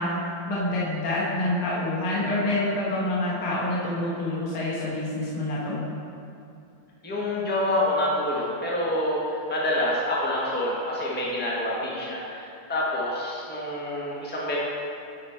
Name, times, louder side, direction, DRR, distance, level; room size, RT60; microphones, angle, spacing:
voice 1, 0.0-5.8, left 1 dB, 70° left, -7 dB, 2.2 m, -27 dB
voice 2, 7.0-14.6, left 1 dB, 5° left, -5 dB, 0.8 m, -27 dB
9.1 x 5.0 x 4.4 m, 2.5 s
omnidirectional pair, 2.4 m